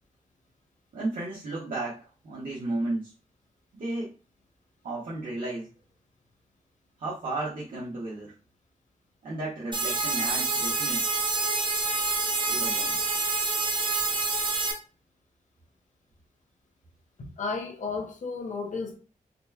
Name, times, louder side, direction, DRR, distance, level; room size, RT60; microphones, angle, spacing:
voice 1, 0.9-3.1 3.7-4.1 4.8-5.7 7.0-8.3 9.2-11.1 12.5-13.0, right 2 dB, 85° right, 1.2 m, -33 dB
sound 1, 9.7-14.7, right 3 dB, 35° right, 0.7 m, -27 dB
voice 2, 17.2-19.0, left 4 dB, 60° left, 0.8 m, -33 dB
4.3 x 2.2 x 2.8 m
wide cardioid pair, 175°, 14 cm